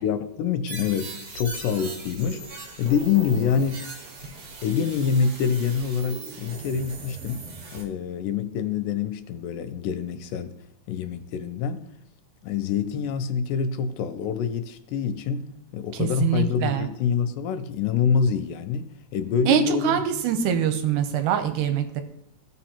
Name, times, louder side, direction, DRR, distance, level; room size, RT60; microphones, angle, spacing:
voice 1, 0.0-3.8 4.6-7.5 7.7-10.6 10.9-11.9 12.4-20.0, left 7 dB, 85° left, 2.2 m, -26 dB
sound 1, 0.7-7.8, right 3 dB, 60° right, 2.0 m, -39 dB
voice 2, 16.0-16.9 19.5-22.0, right 9 dB, 85° right, 2.2 m, -24 dB
15.0 x 5.2 x 2.9 m
omnidirectional pair, 3.8 m